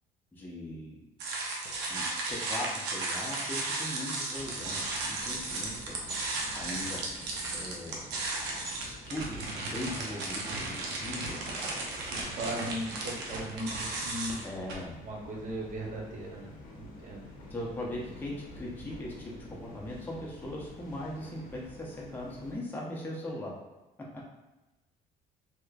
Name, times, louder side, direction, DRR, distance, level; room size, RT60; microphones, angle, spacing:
voice 1, 0.3-1.0 1.9-6.0 6.5-7.0 7.5-8.1 8.8-11.8 12.6-12.7 14.4-15.0 17.5-23.5 24.1-24.3, left 1 dB, 10° left, -4 dB, 0.7 m, -40 dB
sound 1, 1.2-14.7, right 2 dB, 90° right, 0.7 m, -35 dB
sound 2, 4.3-22.6, left 1 dB, 50° left, 0.8 m, -49 dB
voice 2, 12.0-14.4 15.0-17.3, right 1 dB, 50° right, -1 dB, 0.8 m, -38 dB
3.1 x 2.9 x 2.4 m, 1.1 s
cardioid pair, 110°, 17 cm